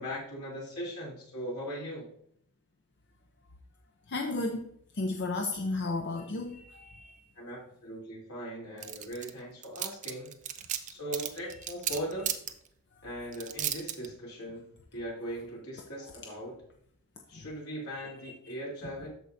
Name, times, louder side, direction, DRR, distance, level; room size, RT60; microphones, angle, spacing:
voice 1, 0.0-2.1 7.3-10.3 10.8-12.3 13.0-14.7 14.9-16.6 17.3-19.1, equal, 75° left, -5 dB, 3.3 m, -39 dB
voice 2, 4.1-4.7 4.9-7.2 17.3-17.4 17.9-18.1, left 2 dB, 50° left, 3 dB, 0.6 m, -33 dB
sound 1, 8.8-9.3 9.6-12.5 13.3-14.1, right 10 dB, 35° right, 0.4 m, -33 dB
13.0 x 4.6 x 2.7 m, 0.65 s
head